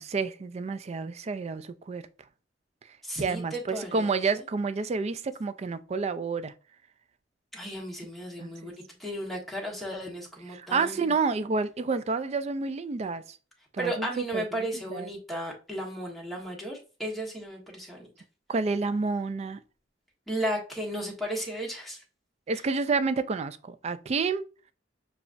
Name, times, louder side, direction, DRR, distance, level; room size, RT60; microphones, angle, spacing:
voice 1, 0.0-2.0 3.2-6.5 8.4-8.5 10.5-13.4 13.7-14.1 14.3-14.4 14.9-15.1 18.5-19.6 22.5-24.4, right 4 dB, 35° right, 0.3 m, -29 dB
voice 2, 3.0-4.1 7.5-8.7 9.0-11.1 13.8-18.1 20.3-22.0, right 1 dB, ahead, 1.2 m, -34 dB
6.8 x 2.4 x 2.5 m
head